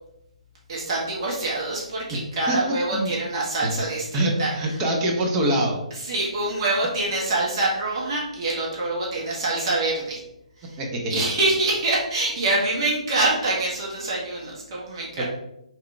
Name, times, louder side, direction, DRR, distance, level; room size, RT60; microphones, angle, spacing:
voice 1, 0.7-4.8 6.0-10.2 10.6-10.8 11.1-15.2, right 2 dB, 40° right, -5 dB, 1.5 m, -25 dB
voice 2, 4.1-5.8 10.8-11.1 15.2-15.3, right 1 dB, 20° right, 0 dB, 0.8 m, -24 dB
4.4 x 3.7 x 3.3 m, 0.82 s
figure-of-eight pair, 140°, 4 cm